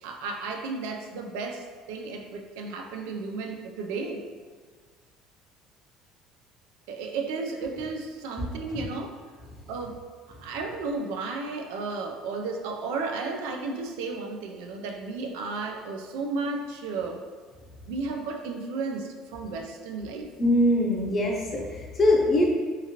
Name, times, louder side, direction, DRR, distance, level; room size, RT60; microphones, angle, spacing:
voice 1, 0.0-4.2 6.9-9.2 9.7-10.0 10.3-17.2 17.9-20.3, right 3 dB, 90° right, 3 dB, 0.3 m, -33 dB
voice 2, 20.4-22.5, left 1 dB, 25° left, -1 dB, 0.5 m, -23 dB
2.8 x 2.5 x 2.8 m, 1.5 s
cardioid pair, 145°, 0 cm